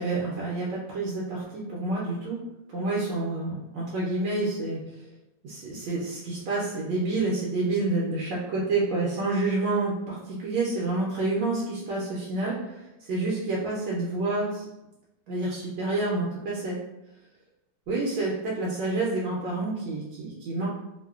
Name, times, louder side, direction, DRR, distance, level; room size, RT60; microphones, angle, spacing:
voice 1, 0.0-2.4 2.7-5.1 5.4-14.6 15.3-16.8 17.9-20.7, right 2 dB, 80° right, -5 dB, 1.2 m, -28 dB
3.1 x 2.1 x 2.3 m, 0.93 s
omnidirectional pair, 1.9 m